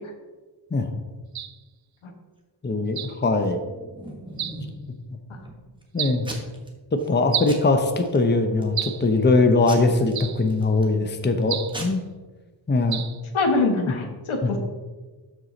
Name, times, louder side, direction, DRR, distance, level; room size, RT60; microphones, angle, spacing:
sound 1, 1.3-1.6 2.9-3.2 4.4-4.7 6.0-6.2 7.3-7.6 8.8-9.1 10.1-10.5 11.5-11.8 12.9-13.2, right 10 dB, 50° right, 0.5 m, -30 dB
voice 1, 2.6-3.6 5.9-6.3 7.1-12.0 12.7-13.0 14.4-14.6, left 3 dB, 20° left, 6 dB, 0.7 m, -21 dB
Packing tape duct tape / Tearing, 3.6-4.9 5.3-5.8 6.2-6.7 7.0-7.2 7.5-8.2 8.6-9.0 9.7-11.0 11.4-11.5 11.7-11.8, right 1 dB, 10° right, 1.3 m, -38 dB
voice 2, 13.3-14.6, left 3 dB, 80° left, 4 dB, 1.4 m, -23 dB
12.5 x 4.7 x 4.0 m, 1.3 s
wide cardioid pair, 115°, 48 cm